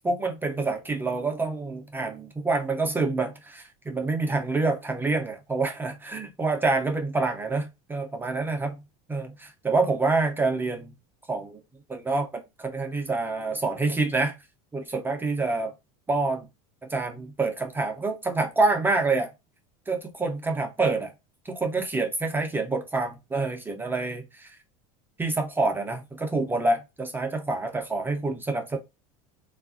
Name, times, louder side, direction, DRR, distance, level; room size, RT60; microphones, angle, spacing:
voice 1, 0.0-8.8 9.1-10.9 11.3-11.6 11.9-14.4 14.7-15.7 16.1-16.5 16.9-19.3 19.9-21.1 21.5-24.5 25.2-28.8, right 3 dB, 10° right, 0.4 m, -27 dB
3.2 x 2.3 x 2.4 m
supercardioid pair, 140°, 17 cm